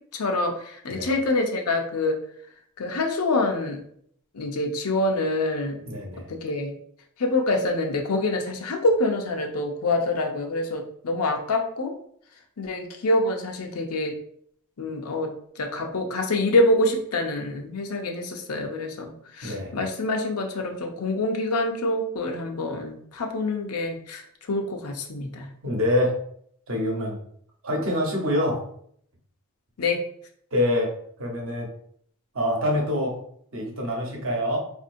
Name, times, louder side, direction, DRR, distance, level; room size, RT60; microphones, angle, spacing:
voice 1, 0.1-2.2 2.8-3.8 4.3-5.8 6.3-6.7 7.2-12.0 12.6-14.1 14.8-25.5 29.8-30.0, left 2 dB, 90° left, 3 dB, 0.6 m, -26 dB
voice 2, 5.9-6.3 19.4-19.7 25.6-26.2 26.7-27.2 27.6-28.6 30.5-30.9 31.2-31.7 32.3-33.1 33.5-34.6, left 1 dB, 65° right, -1 dB, 1.0 m, -25 dB
4.3 x 2.6 x 2.6 m, 0.65 s
head